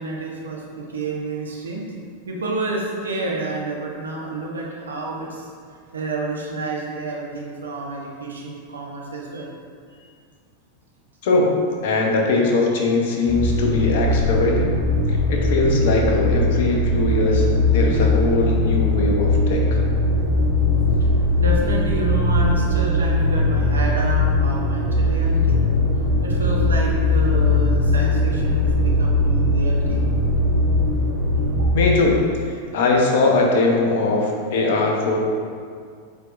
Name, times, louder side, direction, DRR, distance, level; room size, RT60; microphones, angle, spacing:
voice 1, 0.0-1.8 2.3-5.5 5.9-9.5 9.9-10.0 15.1-15.2 21.1-25.6 26.2-30.0, right 2 dB, 70° right, -2 dB, 1.1 m, -29 dB
voice 2, 11.2-11.5 11.8-14.7 15.1-17.5 17.7-19.8 31.7-35.2, left 3 dB, 55° left, 0 dB, 1.0 m, -20 dB
sound 1, 13.3-31.8, left 2 dB, 45° right, 1.4 m, -20 dB
8.0 x 4.6 x 2.6 m, 2.1 s
figure-of-eight pair, 90°, 0 cm